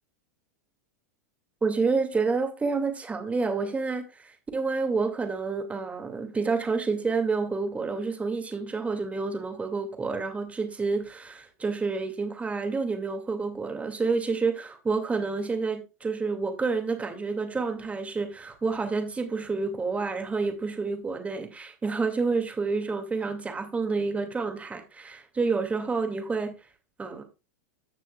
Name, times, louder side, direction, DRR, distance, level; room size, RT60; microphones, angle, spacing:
voice 1, 1.6-26.5 27.0-27.2, right 4 dB, 15° right, 2.4 m, -29 dB
15.0 x 6.2 x 2.4 m
hypercardioid pair, 100°, 9 cm